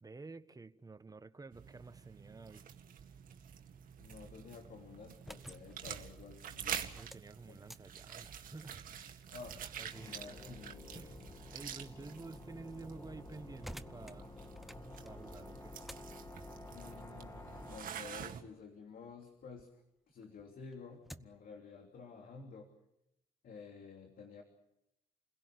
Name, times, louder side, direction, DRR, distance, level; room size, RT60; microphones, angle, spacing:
voice 1, 0.0-2.6 6.9-9.2 9.8-10.2 10.9-14.4 14.7-15.8, right 3 dB, 25° right, 1.5 m, -51 dB
sound 1, 1.5-18.4, right 8 dB, 60° right, 2.0 m, -48 dB
voice 2, 4.0-6.9 7.5-7.6 9.3-9.6 10.0-11.1 16.7-19.8 20.1-22.7 23.4-24.4, left 4 dB, 60° left, 3.2 m, -52 dB
sound 2, 5.2-19.7 20.1-21.5, equal, ahead, 1.0 m, -57 dB
sound 3, 9.9-17.8, left 2 dB, 20° left, 2.0 m, -51 dB
30.0 x 17.0 x 8.3 m
hypercardioid pair, 55°, 16 cm